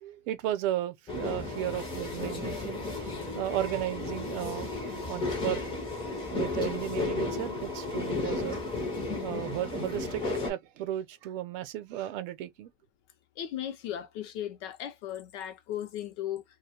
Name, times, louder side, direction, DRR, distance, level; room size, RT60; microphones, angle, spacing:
voice 1, 0.0-5.7 6.3-8.6 9.2-12.7, right 12 dB, 60° right, 0.7 m, -35 dB
sound 1, 1.1-10.5, left 3 dB, 10° left, 0.6 m, -33 dB
voice 2, 13.4-16.4, left 11 dB, 50° left, 0.6 m, -36 dB
2.2 x 2.1 x 2.8 m
supercardioid pair, 150°, 45 cm